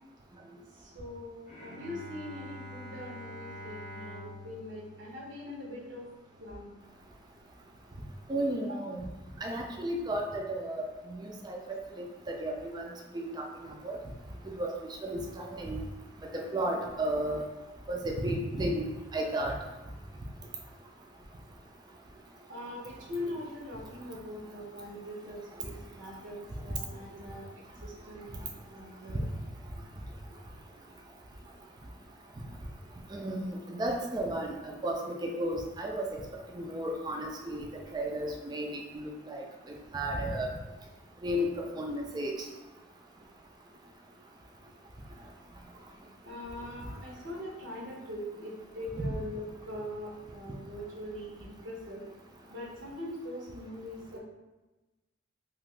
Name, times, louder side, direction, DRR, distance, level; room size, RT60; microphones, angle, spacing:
voice 1, 0.7-6.0 6.4-6.7 8.6-8.8 22.5-27.5 27.8-29.3 46.2-52.0 52.5-54.2, left 1 dB, 80° right, -3 dB, 0.9 m, -42 dB
Bowed string instrument, 1.5-6.7, left 1 dB, 35° left, 0.6 m, -47 dB
voice 2, 8.3-9.0 9.4-12.9 13.1-13.4 13.8-14.0 14.6-14.7 15.0-15.8 16.3-17.4 17.9-18.9 19.1-19.5 33.1-34.5 34.8-36.1 36.5-37.6 37.9-39.4 39.9-40.5 41.2-41.5 41.8-42.3 49.0-49.1, right 1 dB, 20° right, 0 dB, 0.3 m, -33 dB
2.7 x 2.5 x 3.2 m, 1.1 s
head